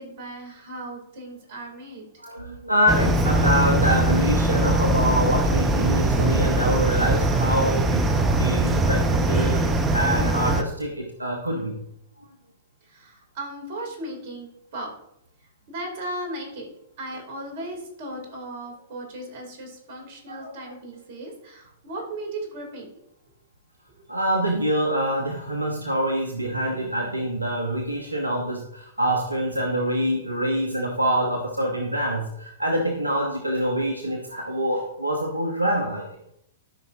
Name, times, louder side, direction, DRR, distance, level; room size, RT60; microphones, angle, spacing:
voice 1, 0.0-2.0 12.8-14.9 15.4-16.7 17.0-22.9 23.9-24.1, right 1 dB, 50° right, 1 dB, 3.1 m, -36 dB
voice 2, 2.2-8.1 8.4-9.6 9.9-11.8 20.3-20.5 24.1-36.1, equal, 85° right, 2 dB, 1.1 m, -25 dB
sound 1, 2.9-10.6, right 1 dB, 15° right, 0.9 m, -21 dB
13.0 x 5.7 x 2.8 m, 0.78 s
figure-of-eight pair, 105°, 0 cm